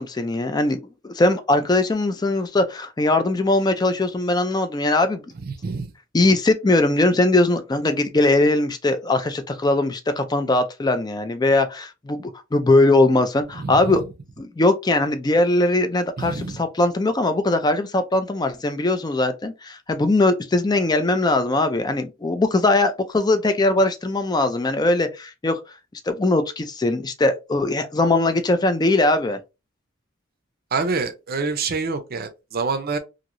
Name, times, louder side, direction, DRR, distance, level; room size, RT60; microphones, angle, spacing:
voice 1, 0.0-5.2 6.1-14.0 14.4-25.6 26.1-29.4, left 2 dB, 20° left, 0.4 m, -20 dB
voice 2, 5.4-5.9 13.5-14.1 16.2-16.6 30.7-33.0, right 4 dB, 50° right, 0.5 m, -27 dB
3.0 x 2.6 x 2.5 m
head